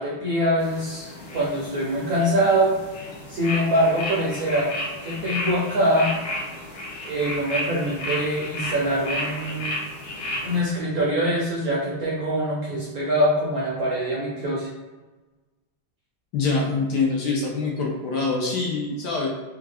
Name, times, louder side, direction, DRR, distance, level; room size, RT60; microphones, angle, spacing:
voice 1, 0.0-2.7 3.3-4.7 5.0-6.1 7.0-9.8 10.4-14.7, equal, 70° right, -5 dB, 0.9 m, -24 dB
sound 1, 0.6-10.6, left 1 dB, 90° left, 1.5 m, -33 dB
voice 2, 16.3-19.3, left 3 dB, 70° left, -2 dB, 1.1 m, -24 dB
3.5 x 2.3 x 3.3 m, 1.2 s
omnidirectional pair, 2.2 m